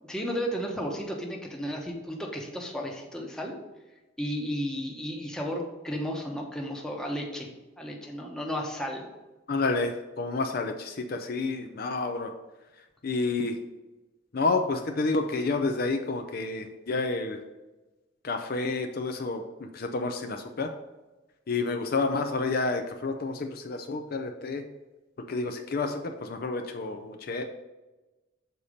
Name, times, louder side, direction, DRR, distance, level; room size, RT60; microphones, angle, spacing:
voice 1, 0.0-3.5 4.2-7.5 7.8-9.0, equal, 5° left, 0 dB, 1.0 m, -33 dB
voice 2, 9.5-12.3 13.0-13.6 14.3-17.4 18.2-20.7 21.5-24.6 25.3-27.4, left 3 dB, 50° left, 5 dB, 0.5 m, -29 dB
6.8 x 4.2 x 5.0 m, 1.1 s
head